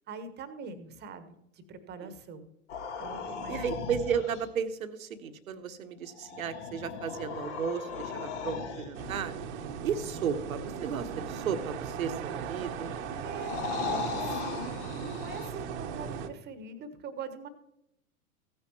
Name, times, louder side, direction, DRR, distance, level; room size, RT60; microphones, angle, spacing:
voice 1, 0.1-2.5 3.0-3.6 13.2-17.5, right 5 dB, 25° right, 11 dB, 1.2 m, -43 dB
sound 1, 2.7-4.5 6.1-9.3 12.1-15.5, left 4 dB, 50° left, 1.9 m, -38 dB
voice 2, 3.5-9.3 9.8-12.9, right 7 dB, 70° right, 9 dB, 1.1 m, -34 dB
sound 2, 8.9-16.3, right 7 dB, 50° right, 1.1 m, -38 dB
15.0 x 9.7 x 3.0 m, 0.78 s
figure-of-eight pair, 100°, 44 cm